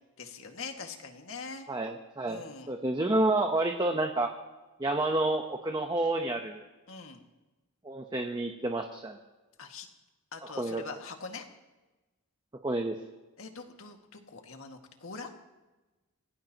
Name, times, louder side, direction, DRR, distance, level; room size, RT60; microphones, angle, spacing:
voice 1, 0.2-1.7 2.3-2.7 6.9-7.2 9.6-9.9 10.3-11.4 13.4-15.3, left 4 dB, 65° left, 3 dB, 2.0 m, -43 dB
voice 2, 1.7-2.4 2.7-4.3 4.8-6.6 7.8-9.2 10.4-10.8 12.6-13.0, right 2 dB, 20° right, 4 dB, 0.9 m, -29 dB
27.5 x 17.0 x 3.0 m, 1.1 s
head